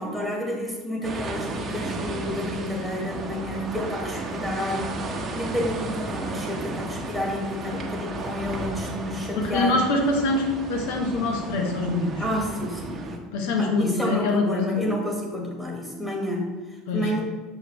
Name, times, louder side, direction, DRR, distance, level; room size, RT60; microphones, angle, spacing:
voice 1, 0.0-5.0 5.3-9.8 12.2-13.2 13.6-17.2, left 1 dB, 5° left, -1 dB, 1.5 m, -30 dB
sound 1, 1.0-13.2, right 2 dB, 30° right, 0.8 m, -34 dB
voice 2, 9.3-12.1 13.3-14.8 16.9-17.1, left 2 dB, 75° left, 1 dB, 1.2 m, -24 dB
6.0 x 4.9 x 3.4 m, 1.3 s
supercardioid pair, 105°, 0 cm